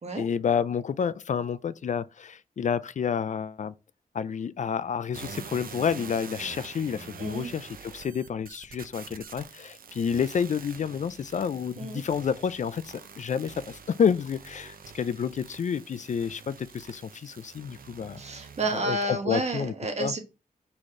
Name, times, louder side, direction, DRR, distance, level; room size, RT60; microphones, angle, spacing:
voice 1, 0.2-3.7 4.1-18.2 18.7-19.7 20.0-20.1, left 7 dB, 55° left, 0.4 m, -29 dB
sound 1, 5.1-18.8, right 6 dB, 75° right, 0.7 m, -46 dB
voice 2, 7.2-7.5 11.8-12.0 18.2-20.2, right 2 dB, 50° right, 1.3 m, -30 dB
4.8 x 4.2 x 6.0 m
wide cardioid pair, 145°, 15 cm